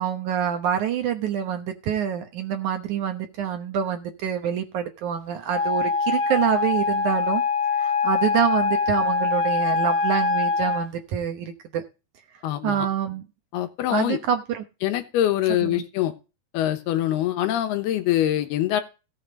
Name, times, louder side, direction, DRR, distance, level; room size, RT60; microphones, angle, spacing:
voice 1, 0.0-7.4 7.8-11.8 12.6-13.2 13.9-14.6 15.6-15.8, right 9 dB, 70° right, 6 dB, 2.0 m, -26 dB
Wind instrument woodwind instrument, 5.5-10.9, left 4 dB, 55° left, 3.3 m, -23 dB
voice 2, 12.4-12.9 13.5-14.2 14.8-16.1 16.5-18.8, left 12 dB, 85° left, 9 dB, 3.1 m, -24 dB
17.0 x 7.3 x 3.9 m, 0.30 s
omnidirectional pair, 4.5 m